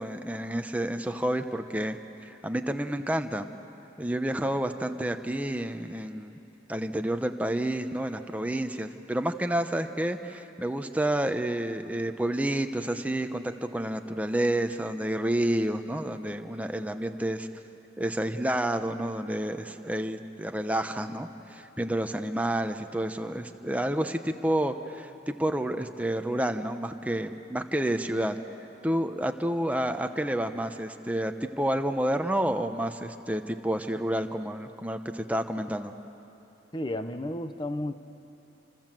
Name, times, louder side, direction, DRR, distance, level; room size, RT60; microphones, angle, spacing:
voice 1, 0.0-2.0 2.2-3.5 4.0-6.4 6.7-17.5 18.0-28.4 28.8-35.9, right 1 dB, 10° right, 7 dB, 0.9 m, -29 dB
voice 2, 36.7-38.0, left 1 dB, 25° left, 9 dB, 0.9 m, -32 dB
28.0 x 25.5 x 7.6 m, 3.0 s
head